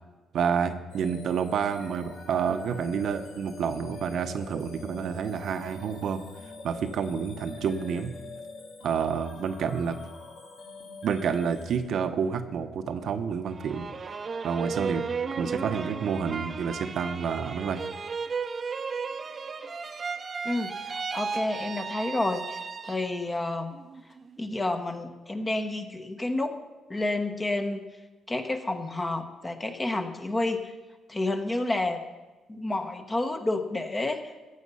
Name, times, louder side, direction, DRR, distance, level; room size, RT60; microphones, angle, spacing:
voice 1, 0.3-6.2 6.6-8.1 8.8-10.0 11.0-13.9 14.4-15.0 15.4-17.8, right 6 dB, 70° right, 7 dB, 0.9 m, -29 dB
sound 1, 0.9-11.8, left 3 dB, 80° left, 2.8 m, -45 dB
sound 2, 13.5-23.3 23.7-24.4, right 5 dB, 40° right, 0.8 m, -34 dB
voice 2, 20.4-23.7 24.4-26.6 26.9-27.8 28.3-30.7 31.1-32.0 32.5-34.2, left 2 dB, 20° left, 6 dB, 1.2 m, -30 dB
14.5 x 8.2 x 5.5 m, 1.2 s
cardioid pair, 90°, 0 cm